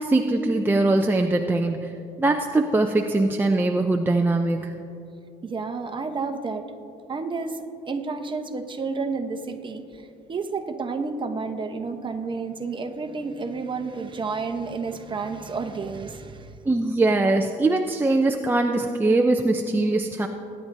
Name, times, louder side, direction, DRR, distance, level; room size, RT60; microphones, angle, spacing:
voice 1, 0.0-4.7 16.7-20.3, right 2 dB, 10° right, 3 dB, 0.5 m, -22 dB
voice 2, 5.4-6.7 7.1-16.6, right 4 dB, 30° right, 6 dB, 0.9 m, -31 dB
21.0 x 9.8 x 2.6 m, 2.6 s
cardioid pair, 110°, 17 cm